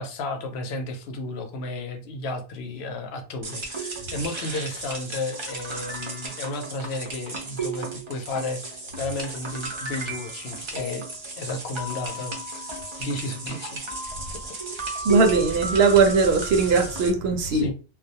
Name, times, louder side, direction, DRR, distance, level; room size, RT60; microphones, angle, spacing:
voice 1, 0.0-11.1 11.4-12.7 13.0-13.8 14.3-14.6 15.0-15.1 17.5-17.7, left 2 dB, 80° left, 0.8 m, -33 dB
sound 1, 3.4-17.1, right 3 dB, 40° right, 0.5 m, -34 dB
voice 2, 15.0-17.7, right 4 dB, 75° right, 0.8 m, -19 dB
2.3 x 2.0 x 2.7 m
omnidirectional pair, 1.1 m